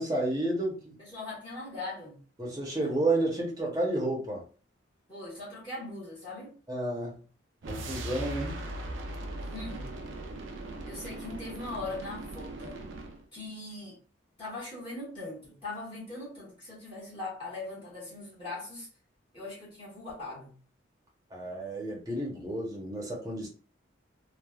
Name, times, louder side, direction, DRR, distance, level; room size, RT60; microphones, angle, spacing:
voice 1, 0.0-1.0 2.4-4.4 6.7-7.2 7.7-8.6 21.3-23.5, right 1 dB, 20° right, -2 dB, 0.8 m, -31 dB
voice 2, 1.0-2.2 5.1-6.5 9.4-9.9 10.8-12.8 13.3-14.0 14.4-18.9 19.3-20.6, left 2 dB, 25° left, -8 dB, 1.4 m, -40 dB
sound 1, 7.6-13.2, right 2 dB, 80° right, 0.5 m, -39 dB
3.2 x 2.2 x 2.3 m, 0.39 s
head